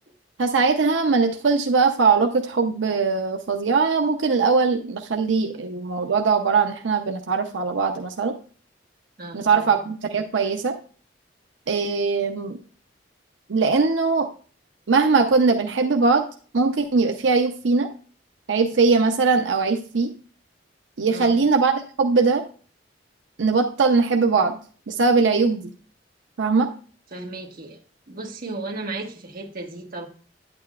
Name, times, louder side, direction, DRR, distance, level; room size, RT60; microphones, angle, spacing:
voice 1, 0.4-8.3 9.3-10.8 11.7-12.6 13.5-14.3 14.9-16.3 16.5-17.9 18.5-20.1 21.0-22.4 23.4-24.6 24.9-25.6 26.4-26.7, right 4 dB, 85° right, 4 dB, 0.6 m, -20 dB
voice 2, 9.2-9.7 21.1-21.4 27.1-27.8 28.1-30.1, right 2 dB, 50° right, 2 dB, 1.3 m, -35 dB
9.4 x 8.8 x 2.3 m, 0.42 s
head